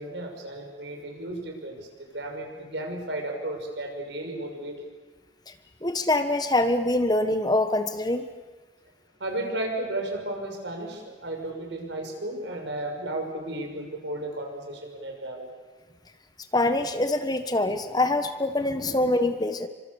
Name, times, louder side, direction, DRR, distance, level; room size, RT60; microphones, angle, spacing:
voice 1, 0.0-4.7 9.2-15.5, right 1 dB, 75° right, 2 dB, 6.5 m, -34 dB
voice 2, 5.8-8.3 16.5-19.7, left 2 dB, 20° left, 8 dB, 1.3 m, -24 dB
29.5 x 25.5 x 7.2 m, 1.3 s
head